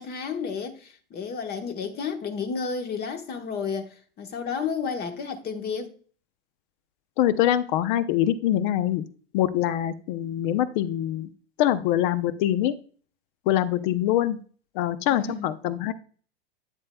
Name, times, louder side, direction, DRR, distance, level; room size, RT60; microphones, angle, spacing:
voice 1, 0.0-5.9 15.1-15.5, left 5 dB, 30° left, 1.2 m, -32 dB
voice 2, 7.2-9.0 9.3-11.3 11.6-12.8 13.5-14.4 14.7-15.9, left 12 dB, 55° left, 0.7 m, -24 dB
9.1 x 7.5 x 2.3 m
hypercardioid pair, 110°, 30 cm